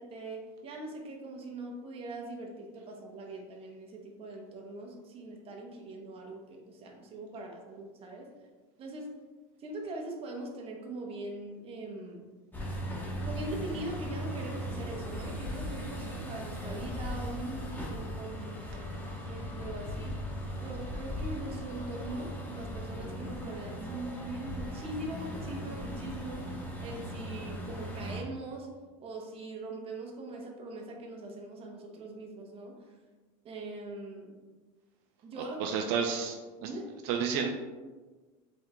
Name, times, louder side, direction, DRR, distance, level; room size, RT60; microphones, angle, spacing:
voice 1, 0.0-8.3 8.8-9.1 9.6-12.3 13.2-20.2 20.6-28.7 29.0-33.0 33.4-34.4 35.2-35.8 36.6-36.8, right 2 dB, 30° right, 1 dB, 0.8 m, -42 dB
sound 1, 12.5-28.2, equal, 10° left, 0.9 m, -38 dB
voice 2, 35.6-36.4 36.6-36.7 37.0-37.5, right 6 dB, 70° right, 3 dB, 0.4 m, -30 dB
4.5 x 3.6 x 2.2 m, 1.3 s
supercardioid pair, 130°, 18 cm